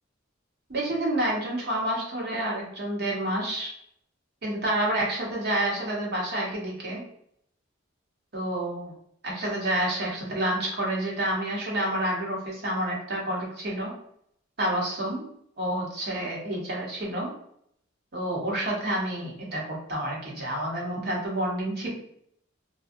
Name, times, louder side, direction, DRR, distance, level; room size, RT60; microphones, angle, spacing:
voice 1, 0.7-3.7 4.4-7.0 8.3-8.9 9.2-13.9 14.6-15.3 15.6-17.3 18.1-21.9, right 1 dB, 55° right, -3 dB, 0.9 m, -29 dB
2.6 x 2.2 x 2.4 m, 0.69 s
head